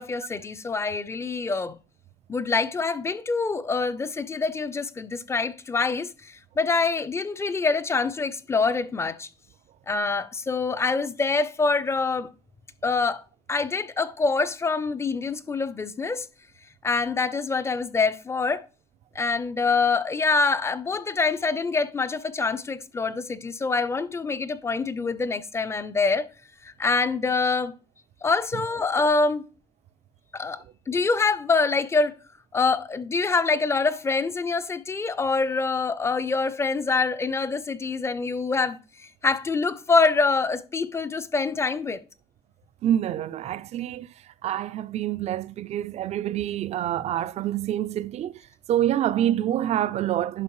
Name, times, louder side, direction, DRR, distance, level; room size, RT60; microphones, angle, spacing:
voice 1, 0.0-1.8 2.3-9.3 9.9-12.3 12.8-13.2 13.5-16.3 16.8-18.6 19.2-26.3 26.6-27.7 28.2-29.4 30.3-30.6 30.9-32.1 32.5-38.8 39.2-42.0, left 4 dB, 15° left, 0.5 m, -25 dB
voice 2, 42.8-48.3 48.7-50.4, right 11 dB, 45° right, 0.4 m, -27 dB
10.5 x 5.0 x 3.1 m
cardioid pair, 125°, 16 cm